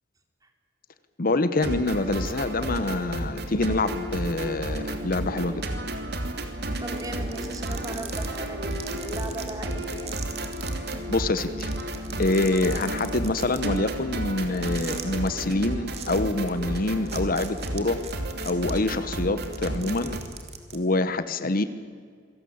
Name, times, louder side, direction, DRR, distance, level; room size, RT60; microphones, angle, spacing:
voice 1, 1.2-5.6 11.1-11.7 12.2-18.0 18.4-20.2 20.7-21.6, left 2 dB, 50° left, 12 dB, 1.0 m, -26 dB
sound 1, 1.5-20.2, right 1 dB, 60° right, 2.6 m, -32 dB
voice 2, 6.8-10.2, right 1 dB, 20° right, 5 dB, 3.0 m, -37 dB
sound 2, 6.9-10.9 11.3-11.4 11.6-13.8 14.5-15.3 15.9-16.2 16.5-16.6 17.1-18.7 19.3-20.8, right 8 dB, 35° right, 2.6 m, -40 dB
26.5 x 18.0 x 8.7 m, 2.1 s
head